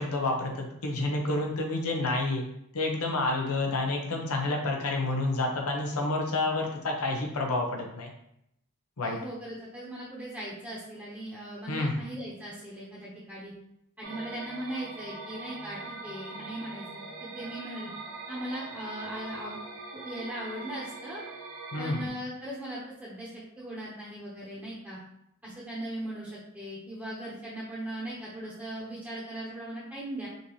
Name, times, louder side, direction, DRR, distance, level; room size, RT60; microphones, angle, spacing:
voice 1, 0.0-2.4 2.7-8.1 9.0-9.2 11.7-12.1 21.7-22.1, left 2 dB, 85° left, 1 dB, 0.7 m, -29 dB
voice 2, 9.0-13.5 14.0-16.8 17.2-17.9 18.3-19.6 19.9-21.2 21.8-23.3 23.6-25.0 25.4-30.3, right 1 dB, 10° right, -8 dB, 1.0 m, -39 dB
sound 1, 14.0-22.1, right 3 dB, 75° right, 0.7 m, -42 dB
5.2 x 2.7 x 3.1 m, 0.77 s
head